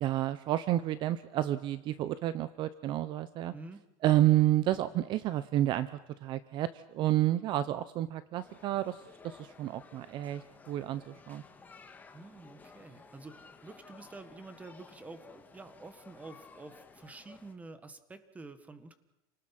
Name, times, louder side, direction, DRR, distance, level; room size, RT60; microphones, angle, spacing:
voice 1, 0.0-3.5 4.0-5.9 6.2-11.4, right 13 dB, 45° right, 14 dB, 0.8 m, -30 dB
voice 2, 3.5-3.8 12.1-19.0, right 3 dB, 10° right, 10 dB, 1.7 m, -49 dB
sound 1, 8.4-17.5, left 4 dB, 15° left, 1.9 m, -55 dB
29.0 x 19.0 x 6.1 m, 0.93 s
supercardioid pair, 145°, 12 cm